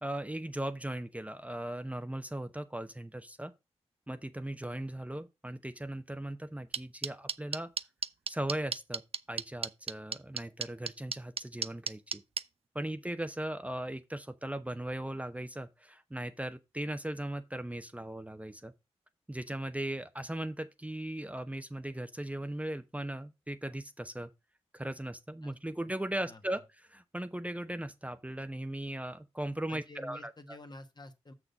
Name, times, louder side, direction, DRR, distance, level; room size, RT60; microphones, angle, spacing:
voice 1, 0.0-3.5 4.1-7.7 8.3-9.0 9.3-12.2 12.7-18.7 19.3-24.3 24.7-26.6 26.9-30.6, right 1 dB, 10° right, 0.9 m, -38 dB
sound 1, 6.7-12.4, right 6 dB, 55° right, 0.5 m, -33 dB
voice 2, 29.7-31.3, left 2 dB, 40° left, 1.5 m, -49 dB
6.6 x 6.2 x 5.3 m
cardioid pair, 45°, 12 cm